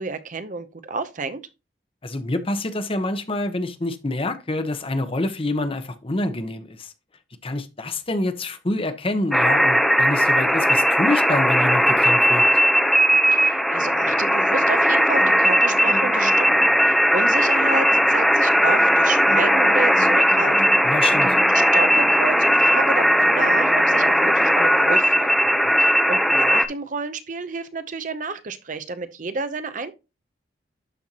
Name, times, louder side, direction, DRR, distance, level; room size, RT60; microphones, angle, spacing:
voice 1, 0.0-1.4 13.3-20.9 21.5-25.3 25.8-29.9, right 4 dB, 45° right, 0.7 m, -30 dB
voice 2, 2.0-6.9 7.4-12.4 20.8-21.4, left 2 dB, 30° left, 0.9 m, -26 dB
sound 1, 9.3-26.7, equal, ahead, 0.7 m, -18 dB
sound 2, 12.4-12.5 13.8-24.9 25.1-25.4, left 1 dB, 55° left, 2.0 m, -41 dB
12.0 x 4.4 x 2.9 m
head